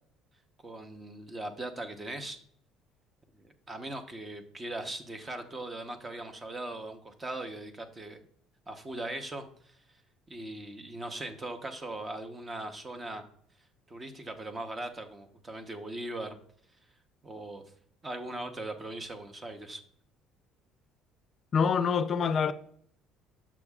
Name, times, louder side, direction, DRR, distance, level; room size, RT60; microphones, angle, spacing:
voice 1, 0.6-2.4 3.3-8.2 8.7-9.8 10.3-13.2 13.9-16.4 17.2-17.6 18.0-19.8, right 2 dB, 20° right, 1.0 m, -39 dB
voice 2, 21.5-22.5, left 6 dB, 40° left, 0.5 m, -25 dB
8.4 x 7.2 x 2.4 m
cardioid pair, 125°, 0 cm